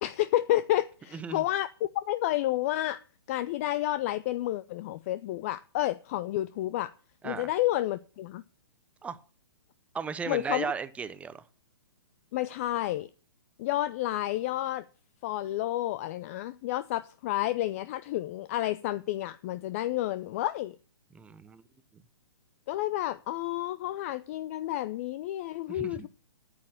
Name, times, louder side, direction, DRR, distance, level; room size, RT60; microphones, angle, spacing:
voice 1, 0.0-3.0 3.3-6.9 7.2-8.4 10.3-10.7 12.3-13.1 13.6-14.8 15.2-20.8 22.7-26.1, left 14 dB, 35° left, 0.5 m, -30 dB
voice 2, 1.1-1.4 7.2-7.5 9.0-9.2 9.9-11.4 21.1-21.6 25.7-26.1, right 5 dB, 10° right, 0.7 m, -36 dB
9.3 x 8.7 x 6.6 m
figure-of-eight pair, 120°, 13 cm